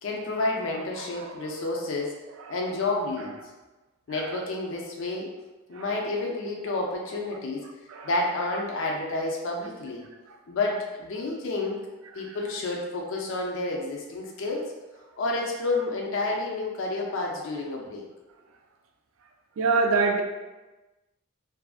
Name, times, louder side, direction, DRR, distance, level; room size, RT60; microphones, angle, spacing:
voice 1, 0.0-2.2 2.5-3.3 4.1-5.3 5.7-7.6 8.0-10.0 10.5-11.8 12.1-14.6 15.2-18.0, left 2 dB, 65° left, -1 dB, 0.4 m, -30 dB
voice 2, 1.0-1.8 2.4-2.7 4.1-4.4 5.7-6.0 7.3-7.4 7.9-8.1 10.3-10.4 11.2-11.3 12.2-12.4 19.6-20.2, right 4 dB, 65° right, 5 dB, 0.3 m, -28 dB
2.6 x 2.4 x 2.3 m, 1.1 s
head